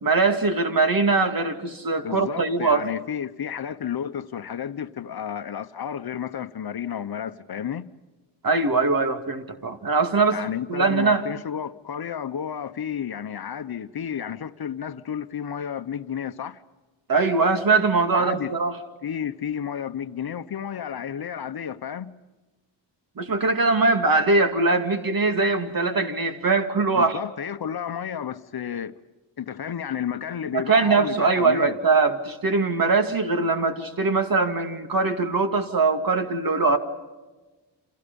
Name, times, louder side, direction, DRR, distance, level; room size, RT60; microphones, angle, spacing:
voice 1, 0.0-2.9 8.4-10.4 10.7-11.3 17.1-18.7 23.2-27.2 30.5-36.8, right 3 dB, 45° right, 2.4 m, -22 dB
voice 2, 2.0-7.9 10.3-16.6 18.1-18.5 19.0-22.2 26.9-29.0 29.4-31.7, left 8 dB, 55° left, 1.0 m, -32 dB
29.5 x 27.5 x 5.4 m
wide cardioid pair, 130°, 46 cm